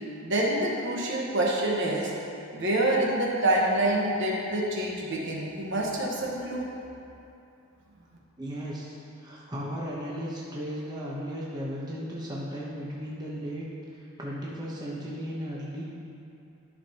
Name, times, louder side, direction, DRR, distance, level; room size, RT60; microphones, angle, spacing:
voice 1, 0.2-2.1 2.5-6.7, right 1 dB, 55° right, -3 dB, 1.2 m, -26 dB
voice 2, 8.4-13.7 13.9-15.8, equal, 20° right, -6 dB, 0.9 m, -36 dB
12.5 x 5.8 x 2.9 m, 2.7 s
head